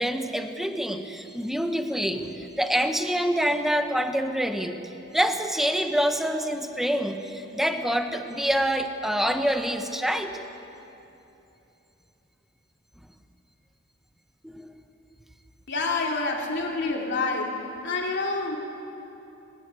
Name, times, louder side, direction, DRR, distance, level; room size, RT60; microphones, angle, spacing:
voice 1, 0.0-4.8 5.1-10.3 14.4-14.7, equal, ahead, 6 dB, 1.2 m, -26 dB
voice 2, 15.7-17.6 17.8-18.6, left 3 dB, 55° left, 0 dB, 3.1 m, -27 dB
20.0 x 19.0 x 8.4 m, 2.9 s
head